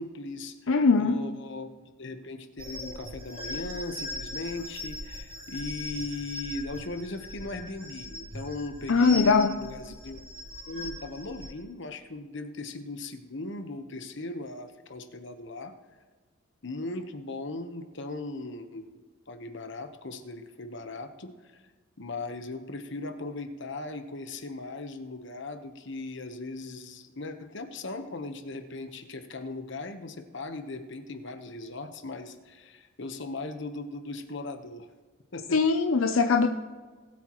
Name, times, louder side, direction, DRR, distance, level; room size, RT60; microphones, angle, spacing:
voice 1, 0.0-1.7 2.0-10.2 10.7-15.7 16.6-19.0 19.3-21.6 22.0-34.9 35.3-35.6, left 2 dB, 65° left, 7 dB, 1.1 m, -38 dB
voice 2, 0.7-1.2 8.9-9.6 35.5-36.5, left 4 dB, 85° left, 6 dB, 0.6 m, -21 dB
sound 1, 2.6-11.5, left 1 dB, 30° right, 2.7 m, -40 dB
20.0 x 8.6 x 3.1 m, 1.4 s
head